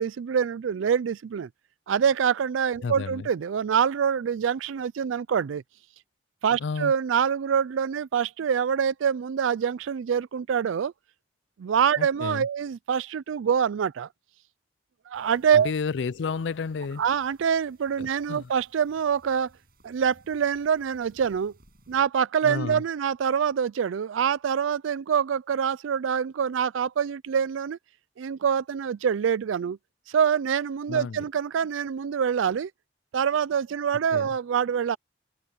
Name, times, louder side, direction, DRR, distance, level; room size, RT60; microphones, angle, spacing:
voice 1, 0.0-1.5 1.9-5.6 6.4-10.9 11.6-14.1 15.1-15.7 17.0-19.5 19.8-21.5 21.9-27.8 28.2-29.8 30.1-32.7 33.1-35.0, right 7 dB, 85° right, 0.4 m, -25 dB
voice 2, 2.8-3.3 6.6-6.9 12.0-12.5 15.6-17.0 18.0-18.5 22.4-22.8 30.9-31.2 34.1-34.3, left 5 dB, 70° left, 0.4 m, -31 dB
sound 1, 15.1-22.1, right 1 dB, 50° right, 7.6 m, -59 dB
head